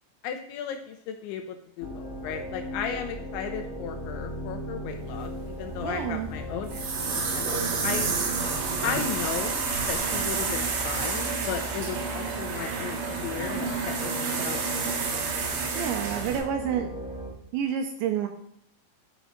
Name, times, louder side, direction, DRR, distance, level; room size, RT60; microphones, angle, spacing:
voice 1, 0.2-7.6 7.8-8.1 8.8-15.2, left 8 dB, 80° left, 5 dB, 2.9 m, -36 dB
sound 1, 1.8-17.3, equal, 25° left, 2.1 m, -38 dB
sound 2, 5.2-16.4, right 5 dB, 65° right, 3.8 m, -30 dB
voice 2, 5.8-6.3 15.7-16.9 17.5-18.3, right 8 dB, 80° right, 5 dB, 2.7 m, -29 dB
11.5 x 6.6 x 5.1 m, 0.72 s
omnidirectional pair, 5.9 m